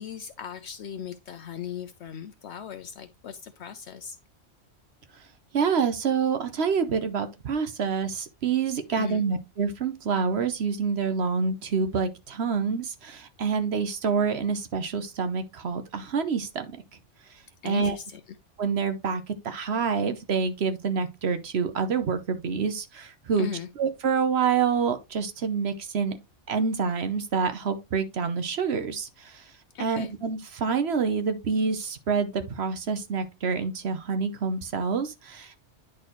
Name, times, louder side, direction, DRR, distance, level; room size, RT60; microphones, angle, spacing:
voice 1, 0.0-4.2 8.9-9.2 17.6-18.2 23.4-23.7 29.7-30.1, left 8 dB, 70° left, 0.9 m, -38 dB
voice 2, 5.5-16.7 17.6-18.0 18.6-23.5 23.8-26.2 26.5-29.4 29.8-35.6, right 5 dB, 60° right, 1.1 m, -27 dB
9.9 x 4.3 x 3.0 m
omnidirectional pair, 1.2 m